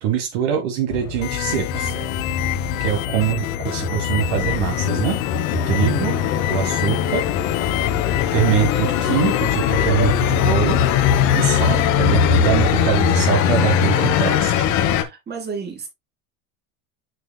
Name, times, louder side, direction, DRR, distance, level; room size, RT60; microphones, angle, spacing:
voice 1, 0.0-1.9 2.8-5.2 5.7-6.2 6.5-7.3 8.3-10.8 11.4-14.7, right 9 dB, 60° right, 1.2 m, -23 dB
sound 1, 0.9-15.0, left 8 dB, 45° left, 1.1 m, -21 dB
sound 2, 1.2-11.9, left 17 dB, 80° left, 0.6 m, -29 dB
voice 2, 1.7-2.1 5.9-6.3 15.0-15.9, right 5 dB, 25° right, 2.3 m, -33 dB
6.7 x 6.6 x 2.2 m
supercardioid pair, 130°, 40 cm